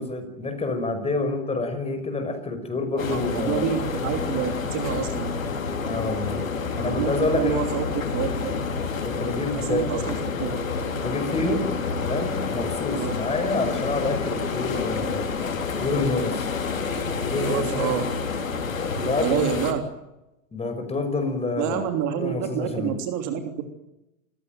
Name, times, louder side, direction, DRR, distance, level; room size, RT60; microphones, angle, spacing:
voice 1, 0.0-3.7 5.8-6.4 6.8-7.7 9.0-10.3 11.0-11.6 12.0-15.3 15.8-16.5 17.2-17.9 18.8-19.5 20.5-22.9, left 2 dB, 15° left, 7 dB, 5.7 m, -28 dB
voice 2, 2.9-5.3 6.8-8.6 9.5-10.6 12.9-13.1 17.4-18.1 19.2-19.8 21.6-23.6, right 8 dB, 45° right, 6 dB, 3.3 m, -28 dB
sound 1, 3.0-19.7, left 5 dB, 85° left, 3.7 m, -28 dB
28.5 x 16.0 x 9.2 m, 0.92 s
hypercardioid pair, 100°, 39 cm